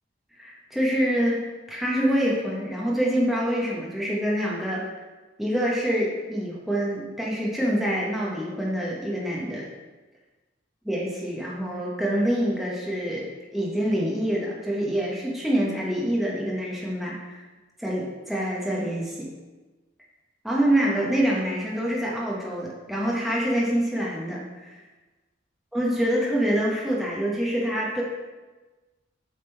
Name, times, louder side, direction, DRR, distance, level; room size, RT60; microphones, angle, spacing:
voice 1, 0.4-4.8 5.4-9.7 10.8-17.4 17.8-19.3 20.4-24.8 25.7-28.0, equal, ahead, -5 dB, 0.9 m, -26 dB
6.7 x 3.7 x 4.4 m, 1.2 s
head